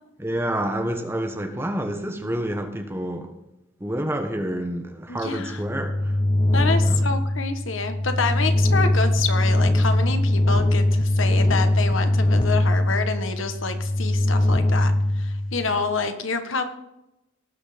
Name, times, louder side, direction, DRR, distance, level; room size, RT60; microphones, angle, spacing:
voice 1, 0.2-3.3 3.8-6.1 6.8-7.0, right 1 dB, 10° right, 4 dB, 1.3 m, -28 dB
voice 2, 5.1-5.6 6.5-16.6, left 4 dB, 85° left, 8 dB, 1.4 m, -28 dB
sound 1, 5.3-15.9, left 1 dB, 25° left, 0.6 m, -21 dB
18.5 x 6.2 x 5.1 m, 0.89 s
head